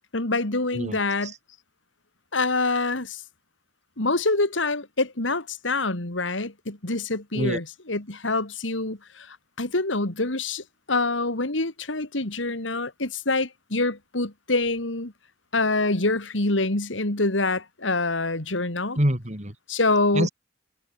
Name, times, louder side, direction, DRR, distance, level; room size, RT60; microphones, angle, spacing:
voice 1, 0.1-1.3 2.3-3.2 4.0-15.1 15.5-19.0 19.7-20.3, left 2 dB, 90° left, 3.0 m, -26 dB
voice 2, 0.7-1.3 7.3-7.6 19.0-19.6 20.1-20.3, equal, 40° right, 5.5 m, -26 dB
head